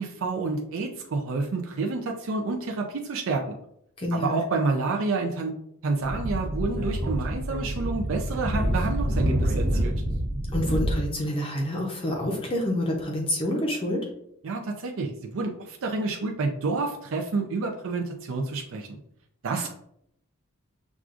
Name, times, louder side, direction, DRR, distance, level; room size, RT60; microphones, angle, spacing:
voice 1, 0.0-3.6 4.1-5.5 5.8-9.9 14.4-19.0 19.4-19.7, right 3 dB, 60° right, 3 dB, 0.4 m, -29 dB
voice 2, 4.0-4.4 10.5-14.0 19.5-19.7, left 1 dB, 25° left, -1 dB, 0.6 m, -28 dB
Speech / Wind, 6.0-10.9, right 1 dB, 40° right, 0.8 m, -27 dB
6.0 x 2.4 x 2.4 m, 0.73 s
head